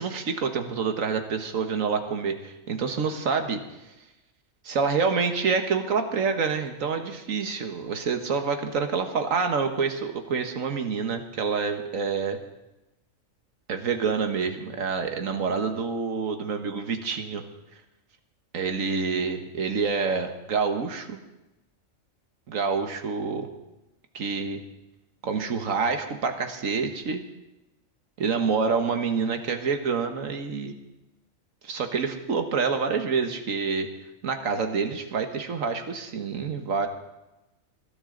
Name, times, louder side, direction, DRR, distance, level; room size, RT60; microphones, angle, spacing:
voice 1, 0.0-3.6 4.6-12.4 13.7-17.4 18.5-21.2 22.5-23.5 24.1-24.6 25.2-27.2 28.2-30.7 31.6-33.9 34.2-36.9, right 5 dB, 80° right, 6 dB, 1.6 m, -27 dB
20.0 x 13.0 x 3.8 m, 0.98 s
omnidirectional pair, 1.4 m